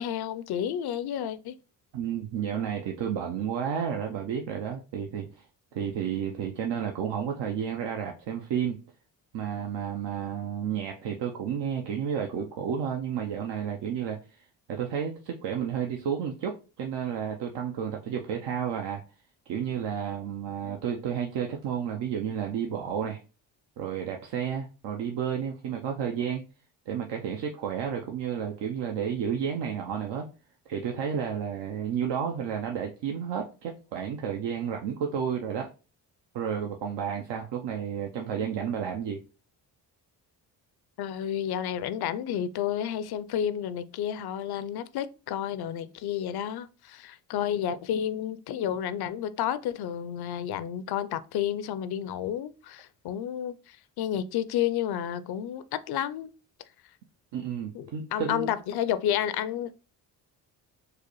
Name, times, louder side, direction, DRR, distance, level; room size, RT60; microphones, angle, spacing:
voice 1, 0.0-1.6 41.0-56.3 57.7-59.8, left 10 dB, 60° left, 0.5 m, -31 dB
voice 2, 1.9-5.5 5.7-8.8 9.3-19.0 19.5-23.2 23.8-26.5 26.9-30.3 30.7-35.7 36.3-39.2 57.3-58.5, right 8 dB, 70° right, 0.7 m, -31 dB
4.7 x 2.1 x 3.0 m
supercardioid pair, 60°, 44 cm